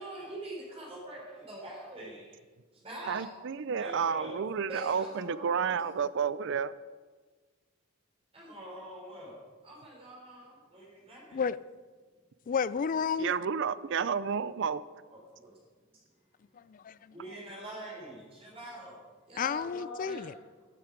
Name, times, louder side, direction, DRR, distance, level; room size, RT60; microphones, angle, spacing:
voice 1, 0.0-2.4 2.7-3.4 3.8-5.8 8.3-11.4 15.1-15.6 17.1-19.0 19.3-20.3, right 1 dB, 30° right, -4 dB, 3.6 m, -44 dB
voice 2, 3.1-6.7 13.2-14.8, right 6 dB, 60° right, 17 dB, 0.4 m, -31 dB
voice 3, 12.5-13.3 16.5-17.1 19.4-20.3, left 6 dB, 40° left, 18 dB, 0.3 m, -32 dB
12.0 x 10.5 x 5.1 m, 1.4 s
head